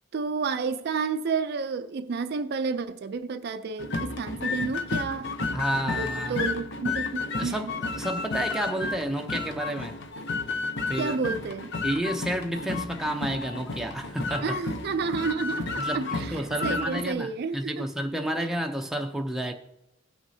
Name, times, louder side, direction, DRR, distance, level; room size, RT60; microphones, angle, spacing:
voice 1, 0.1-5.3 6.0-7.7 11.0-11.7 14.4-17.9, right 5 dB, 50° right, 0.4 m, -30 dB
sound 1, 3.8-17.1, left 3 dB, 60° left, 0.7 m, -32 dB
voice 2, 5.5-6.4 7.4-10.0 10.9-11.2 11.8-14.6 15.8-19.5, right 1 dB, ahead, 0.6 m, -31 dB
16.5 x 6.1 x 2.7 m
head